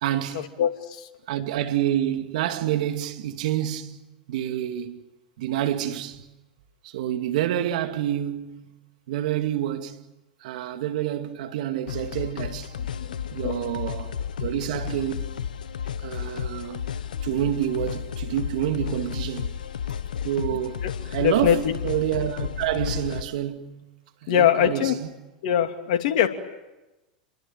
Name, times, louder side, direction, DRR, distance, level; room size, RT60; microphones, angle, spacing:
voice 1, 0.0-0.5 1.3-4.0 4.3-5.0 5.4-6.3 6.8-8.7 9.1-10.0 10.4-12.7 13.3-15.3 16.0-16.8 17.2-19.6 20.2-23.8 24.2-25.1, right 11 dB, 65° right, 2.5 m, -28 dB
voice 2, 0.6-1.1 13.0-13.8 20.8-20.9 21.2-21.6 24.3-25.0 25.4-26.3, left 9 dB, 65° left, 2.9 m, -22 dB
sound 1, 11.9-23.2, left 8 dB, 80° left, 1.3 m, -32 dB
29.0 x 23.0 x 8.9 m
hypercardioid pair, 100°, 4 cm